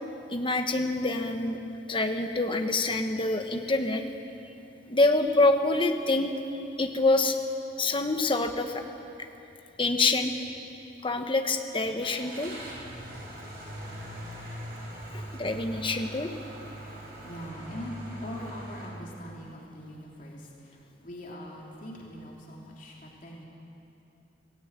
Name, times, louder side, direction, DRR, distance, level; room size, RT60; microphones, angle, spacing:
voice 1, 0.3-1.6 1.9-4.0 4.9-6.3 6.8-7.4 7.8-8.8 9.2-9.3 9.8-10.3 11.0-12.5 15.1-16.3, left 2 dB, 30° left, 6 dB, 1.3 m, -26 dB
Car / Engine starting, 12.0-18.9, right 1 dB, 55° right, 6.4 m, -41 dB
voice 2, 17.2-23.4, equal, 50° left, -3 dB, 3.2 m, -42 dB
17.5 x 17.0 x 8.9 m, 2.8 s
head